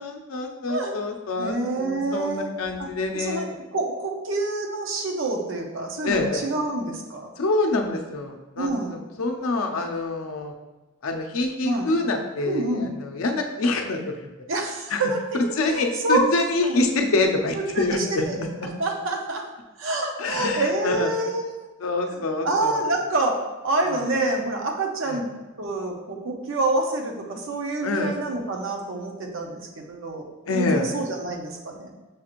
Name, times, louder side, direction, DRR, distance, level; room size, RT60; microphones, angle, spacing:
voice 1, 0.0-3.5 6.0-6.4 7.4-10.5 11.0-14.0 14.9-15.0 15.5-18.5 20.2-21.1 21.8-22.8 25.1-25.2 27.8-28.1 30.5-30.9, left 2 dB, 75° left, 4 dB, 0.5 m, -26 dB
voice 2, 1.4-2.5 2.8-2.9 3.1-7.3 8.6-9.0 11.6-11.9 12.5-12.9 14.5-16.3 16.6-16.8 17.5-18.4 18.8-19.4 19.8-21.7 22.1-25.3 25.6-31.9, right 2 dB, 65° right, 2 dB, 0.6 m, -27 dB
6.2 x 2.4 x 2.9 m, 1.1 s
head